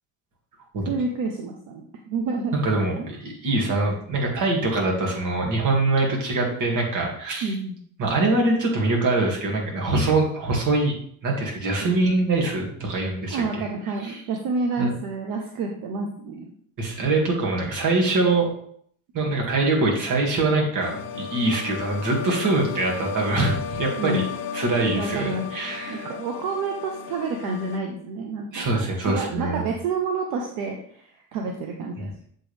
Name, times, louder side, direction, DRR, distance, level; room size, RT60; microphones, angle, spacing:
voice 1, 0.8-2.6 3.0-3.1 7.4-7.8 11.8-12.0 13.3-16.5 24.0-24.3 24.9-25.5 25.9-32.1, right 3 dB, 80° right, 2 dB, 0.9 m, -29 dB
voice 2, 2.5-7.5 8.0-10.9 11.2-13.6 14.0-14.2 14.8-14.9 16.8-18.5 19.1-24.2 24.5-26.1 28.5-29.7, right 2 dB, 55° right, -1 dB, 2.2 m, -23 dB
sound 1, 20.8-27.8, left 6 dB, 90° left, 0.7 m, -34 dB
7.5 x 4.5 x 3.4 m, 0.63 s
cardioid pair, 105°, 36 cm